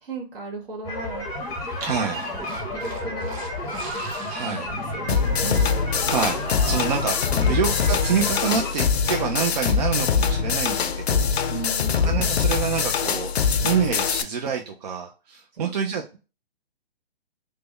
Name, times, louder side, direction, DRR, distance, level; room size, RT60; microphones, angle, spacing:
voice 1, 0.0-1.3 2.3-2.4 2.7-3.4 4.7-5.7 7.3-7.7 11.5-12.3 15.5-15.7, right 3 dB, 60° right, 2 dB, 1.6 m, -35 dB
sound 1, 0.8-8.7, left 1 dB, 10° left, 0.7 m, -32 dB
sound 2, 1.7-6.9, right 2 dB, 80° right, 1.0 m, -38 dB
voice 2, 1.8-2.2 4.3-4.7 6.1-11.4 12.0-16.2, right 6 dB, 40° right, 3 dB, 0.4 m, -27 dB
sound 3, 5.1-14.2, left 6 dB, 80° left, 0.5 m, -23 dB
3.3 x 2.1 x 3.2 m, 0.32 s
hypercardioid pair, 135°, 31 cm